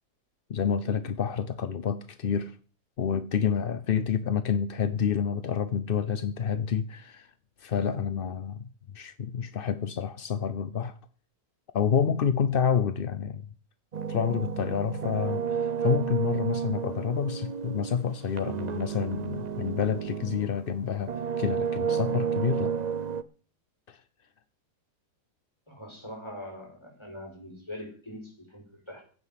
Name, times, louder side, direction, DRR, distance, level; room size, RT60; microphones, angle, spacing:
voice 1, 0.5-2.6 3.0-7.3 7.6-8.7 8.9-11.0 11.7-13.4 14.1-22.7 23.9-24.0, left 7 dB, 50° left, 0.7 m, -28 dB
sound 1, 13.9-20.6 21.0-23.2, right 7 dB, 70° right, 0.4 m, -31 dB
voice 2, 25.7-29.0, left 1 dB, 15° left, 6.0 m, -42 dB
16.0 x 9.1 x 5.9 m
omnidirectional pair, 1.7 m